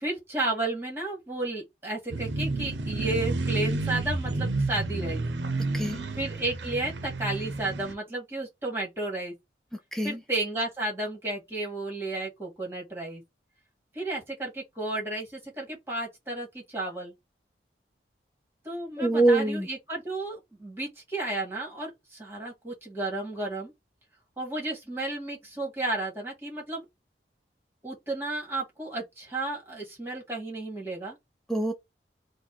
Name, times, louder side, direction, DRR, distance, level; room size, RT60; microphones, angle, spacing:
voice 1, 0.0-5.2 6.2-9.3 10.0-13.2 13.9-17.1 18.6-23.7 24.4-26.8 27.8-31.2, right 2 dB, 15° right, 1.8 m, -33 dB
sound 1, 2.1-7.9, right 2 dB, 85° right, 0.7 m, -30 dB
voice 2, 5.7-6.0 9.9-10.2 19.0-19.7 31.5-31.7, right 2 dB, ahead, 0.4 m, -24 dB
4.1 x 2.3 x 4.5 m
head